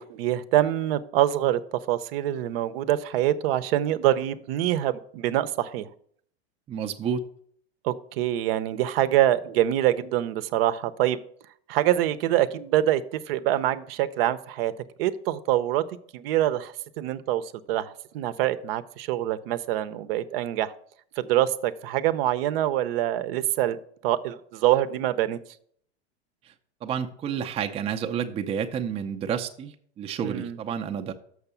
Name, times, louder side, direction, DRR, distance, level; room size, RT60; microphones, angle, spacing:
voice 1, 0.0-1.6 1.9-5.9 7.8-11.2 11.7-14.7 15.0-15.8 16.1-20.7 21.2-25.4 30.2-30.6, right 13 dB, 60° right, 14 dB, 0.6 m, -25 dB
voice 2, 6.7-7.3 26.4-26.5 26.8-31.1, right 7 dB, 20° right, 5 dB, 0.4 m, -30 dB
6.4 x 6.0 x 6.8 m, 0.63 s
supercardioid pair, 130°, 33 cm